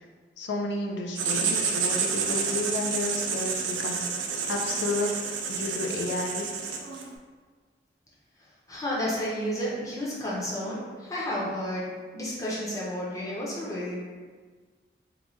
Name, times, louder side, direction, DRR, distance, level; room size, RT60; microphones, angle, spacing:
voice 1, 0.4-5.1 5.5-6.5, left 2 dB, 80° left, 1 dB, 0.4 m, -31 dB
Writing, 1.2-7.1, right 6 dB, 90° right, 0.4 m, -29 dB
voice 2, 8.4-14.1, equal, 20° left, -7 dB, 0.6 m, -32 dB
3.0 x 2.2 x 2.6 m, 1.5 s
head